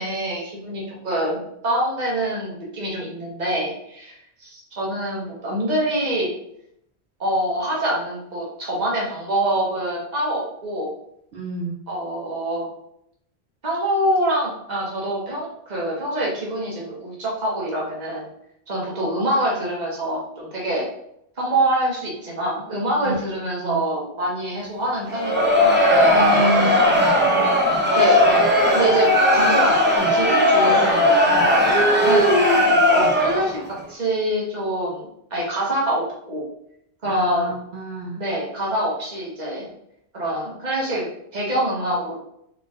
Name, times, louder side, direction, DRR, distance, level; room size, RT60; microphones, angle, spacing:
voice 1, 0.0-6.3 7.2-10.9 11.9-12.7 13.6-18.3 18.7-20.9 21.4-25.7 26.3-26.8 28.0-32.4 32.9-36.5 37.0-37.5 38.2-39.7 40.1-42.2, right 1 dB, 45° right, -4 dB, 1.3 m, -25 dB
voice 2, 11.3-11.8 23.0-23.8 26.1-27.5 37.0-38.2, right 1 dB, 80° right, -2 dB, 1.0 m, -29 dB
Crowd, 25.1-33.6, left 1 dB, 15° right, 0.6 m, -17 dB
3.8 x 3.6 x 2.5 m, 0.76 s
omnidirectional pair, 1.1 m